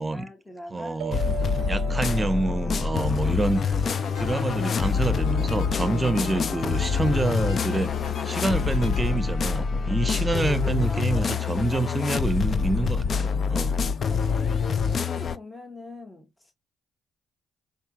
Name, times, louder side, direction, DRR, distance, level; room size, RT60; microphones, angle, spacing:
voice 1, 0.1-1.6 10.9-11.5 14.1-16.5, left 1 dB, 15° left, 1.1 m, -43 dB
voice 2, 0.7-1.2 1.7-3.8 4.2-7.9 8.2-13.8, right 2 dB, 20° right, 0.8 m, -27 dB
sound 1, 1.0-4.0, right 13 dB, 90° right, 0.4 m, -38 dB
sound 2, 1.1-15.4, left 6 dB, 45° left, 0.4 m, -26 dB
sound 3, 3.8-9.1, left 4 dB, 75° left, 1.2 m, -38 dB
4.4 x 3.9 x 2.2 m
cardioid pair, 90°, 0 cm